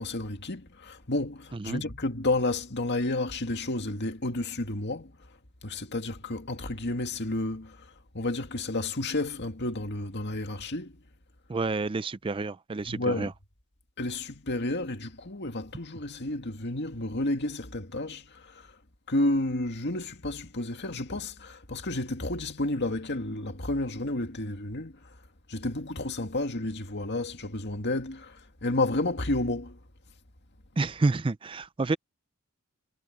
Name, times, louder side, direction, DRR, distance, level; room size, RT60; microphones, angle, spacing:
voice 1, 0.0-5.3 5.6-11.0 12.9-13.3 14.0-18.8 19.1-25.2 25.5-29.8, left 2 dB, 50° left, 2.2 m, -31 dB
voice 2, 11.5-13.3 30.8-32.0, right 3 dB, 25° right, 0.4 m, -29 dB
head